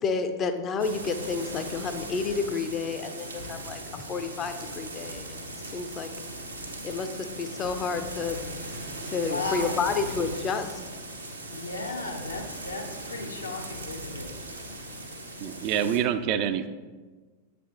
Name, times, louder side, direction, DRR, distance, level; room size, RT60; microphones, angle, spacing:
voice 1, 0.0-5.4 5.7-6.1 6.8-8.4 9.0-10.8, left 5 dB, 25° left, 8 dB, 0.4 m, -30 dB
sound 1, 0.8-16.0, right 1 dB, 80° right, 0.7 m, -38 dB
voice 2, 9.2-9.8 11.5-14.3, left 3 dB, 75° left, 2 dB, 0.7 m, -35 dB
voice 3, 15.4-16.7, right 9 dB, 45° right, 10 dB, 0.3 m, -26 dB
7.7 x 3.4 x 3.7 m, 1.3 s
figure-of-eight pair, 90°, 0 cm